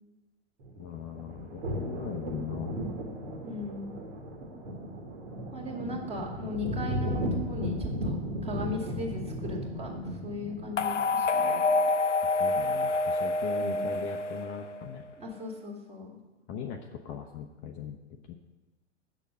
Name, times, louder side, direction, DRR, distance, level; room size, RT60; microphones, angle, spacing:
sound 1, 0.6-11.0, equal, 60° right, 2.0 m, -35 dB
voice 1, 0.8-2.8 12.4-15.0 16.5-18.0 18.3-18.4, left 8 dB, 30° left, 3 dB, 0.8 m, -39 dB
voice 2, 3.4-3.9 5.5-7.2 7.5-8.2 8.4-9.9 10.2-11.7 13.6-13.9 15.2-16.2, left 2 dB, 15° right, -1 dB, 2.0 m, -37 dB
sound 2, 10.8-15.0, left 3 dB, 85° left, 0.6 m, -27 dB
8.1 x 6.5 x 8.0 m, 1.1 s
figure-of-eight pair, 100°, 35 cm